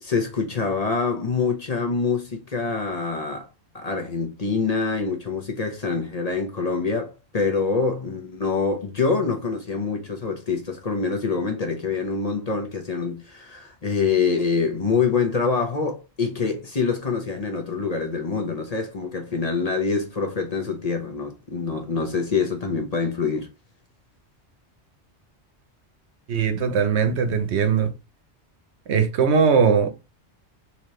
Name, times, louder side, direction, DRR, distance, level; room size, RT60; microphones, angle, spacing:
voice 1, 0.0-3.5 3.7-23.5, left 4 dB, 40° left, 0.8 m, -25 dB
voice 2, 26.3-27.9 28.9-29.9, right 6 dB, 75° right, 1.0 m, -20 dB
4.0 x 2.9 x 3.0 m
omnidirectional pair, 1.2 m